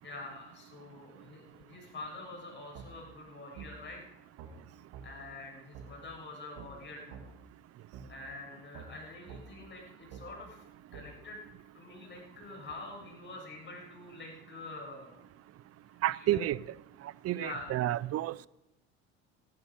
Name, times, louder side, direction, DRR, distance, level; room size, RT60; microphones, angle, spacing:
voice 1, 0.0-4.0 5.0-7.2 8.1-10.6 10.9-11.4 11.7-15.2 16.2-16.5 17.3-17.7, left 2 dB, 30° left, 7.1 m, -46 dB
sound 1, 2.7-2.9 3.6-3.7 4.4-4.5 4.9-5.1 5.7-5.9 6.6-6.7 7.1-7.3 7.9-8.1 8.7-8.9 9.3-9.4 10.1-10.2 10.9-11.1, right 7 dB, 70° right, 2.4 m, -46 dB
voice 2, 16.0-16.6 17.2-18.5, right 14 dB, 45° right, 0.5 m, -30 dB
15.0 x 13.0 x 5.1 m
supercardioid pair, 85°, 34 cm